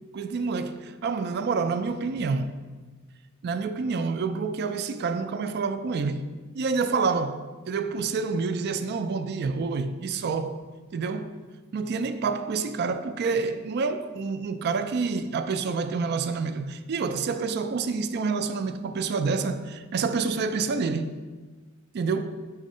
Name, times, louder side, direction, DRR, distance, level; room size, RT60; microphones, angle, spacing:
voice 1, 0.1-2.6 3.4-10.7 10.9-11.4 11.7-21.2 21.9-22.3, right 4 dB, 50° right, 0.3 m, -28 dB
5.1 x 3.6 x 5.3 m
head